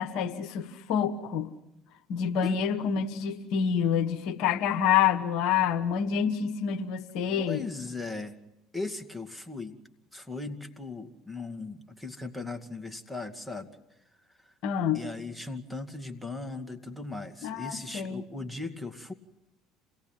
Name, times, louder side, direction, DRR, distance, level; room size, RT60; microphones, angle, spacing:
voice 1, 0.0-1.5 2.1-7.7 14.6-15.0 17.4-18.2, left 8 dB, 65° left, 7 dB, 1.3 m, -27 dB
voice 2, 7.4-8.3 8.7-9.8 10.1-13.7 14.9-19.1, left 3 dB, ahead, 5 dB, 2.3 m, -38 dB
27.5 x 17.5 x 9.3 m, 0.89 s
hypercardioid pair, 65°, 0 cm